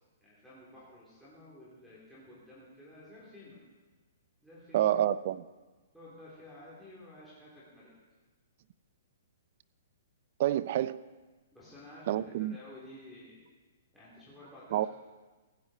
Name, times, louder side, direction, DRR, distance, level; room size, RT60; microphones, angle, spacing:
voice 1, 0.2-3.6 4.4-4.9 5.9-7.9 11.5-13.4 13.9-14.9, left 1 dB, ahead, 3.6 m, -52 dB
voice 2, 4.7-5.4 10.4-11.0 12.1-12.6 14.7-14.9, right 12 dB, 50° right, 0.5 m, -28 dB
16.5 x 9.6 x 4.4 m
hypercardioid pair, 145°, 0 cm